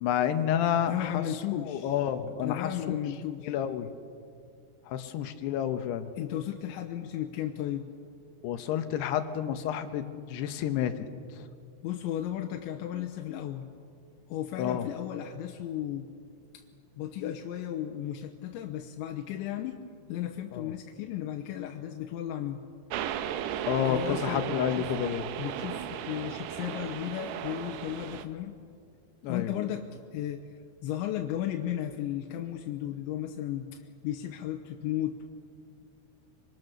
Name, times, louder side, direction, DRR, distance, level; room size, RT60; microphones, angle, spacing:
voice 1, 0.0-1.2 1.5-2.7 3.4-3.9 4.9-6.1 8.4-11.1 11.4-11.5 14.6-14.9 20.5-20.7 23.7-25.3 29.2-29.5, left 9 dB, 75° left, 9 dB, 3.0 m, -30 dB
voice 2, 0.9-2.0 2.4-3.6 6.2-7.9 11.8-13.7 14.3-16.1 16.5-16.6 17.0-22.6 23.8-24.9 25.4-28.6 29.3-30.5 30.8-35.3, left 11 dB, 90° left, 4 dB, 3.3 m, -35 dB
sound 1, 22.9-28.3, right 10 dB, 80° right, 3.1 m, -35 dB
25.0 x 24.0 x 6.7 m, 2.3 s
omnidirectional pair, 5.1 m